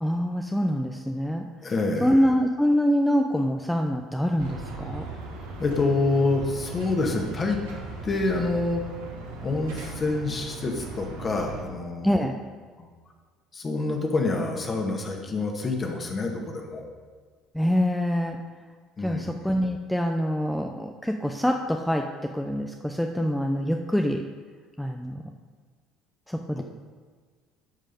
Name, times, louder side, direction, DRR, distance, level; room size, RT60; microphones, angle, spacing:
voice 1, 0.0-1.4 2.0-5.0 12.0-12.3 17.5-18.4 19.0-24.2 24.8-25.2 26.3-26.6, equal, 5° left, 3 dB, 0.7 m, -25 dB
voice 2, 1.6-2.2 5.6-7.6 8.0-8.8 9.4-12.2 12.8-12.9 13.5-16.9 19.0-19.3 26.6-26.7, left 3 dB, 35° left, 2 dB, 1.9 m, -27 dB
sound 1, 4.4-11.6, right 3 dB, 75° right, 1.8 m, -38 dB
12.0 x 5.5 x 5.3 m, 1.5 s
hypercardioid pair, 60°, 0 cm